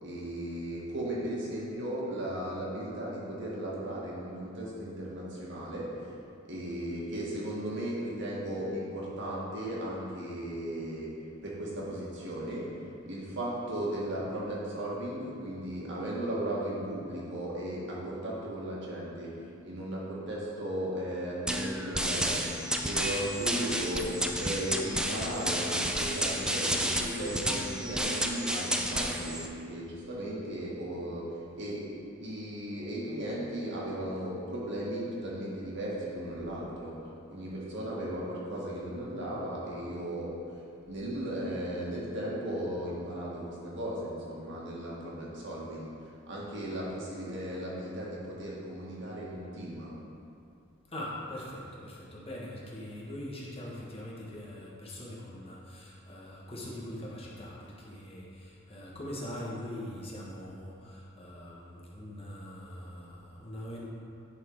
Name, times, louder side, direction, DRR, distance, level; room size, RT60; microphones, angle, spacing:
voice 1, 0.0-5.9 6.5-11.1 11.4-12.7 13.1-19.3 19.6-22.4 22.8-24.1 24.4-31.2 31.6-31.8 32.2-36.9 37.3-40.4 40.9-45.9 46.3-49.9, right 1 dB, 65° right, -5 dB, 1.8 m, -36 dB
sound 1, 21.5-29.5, equal, 5° right, 0.4 m, -31 dB
voice 2, 50.9-63.9, left 1 dB, 30° left, -5 dB, 1.4 m, -42 dB
10.0 x 4.3 x 4.7 m, 2.5 s
head